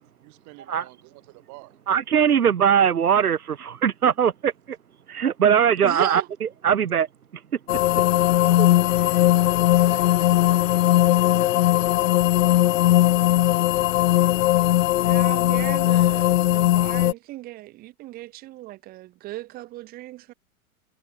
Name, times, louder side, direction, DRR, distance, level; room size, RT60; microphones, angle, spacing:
voice 1, 0.0-1.8 8.1-11.6 18.0-18.1, right 27 dB, 40° right, 2.9 m, -47 dB
voice 2, 1.9-4.8 5.1-7.1 7.3-8.1 8.6-8.7 9.0-9.2, right 8 dB, 85° right, 1.1 m, -21 dB
voice 3, 5.8-6.3 15.0-20.3, right 17 dB, 20° right, 0.6 m, -36 dB
sound 1, 7.7-17.1, left 15 dB, 60° left, 0.8 m, -19 dB
figure-of-eight pair, 100°, 43 cm